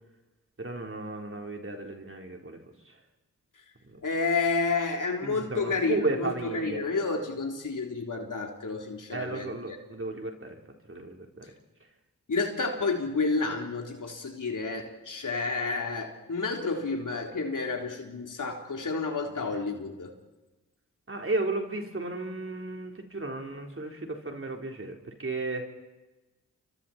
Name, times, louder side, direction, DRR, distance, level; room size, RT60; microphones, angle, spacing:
voice 1, 0.6-3.0 3.8-4.0 5.2-6.9 9.1-10.6 10.9-11.5 18.9-19.0 19.4-19.5 21.1-25.6, right 2 dB, 40° right, 2 dB, 4.1 m, -34 dB
voice 2, 4.0-9.5 12.3-20.1, left 4 dB, 65° left, 2 dB, 3.8 m, -30 dB
30.0 x 24.0 x 4.4 m, 1.1 s
cardioid pair, 45°, 34 cm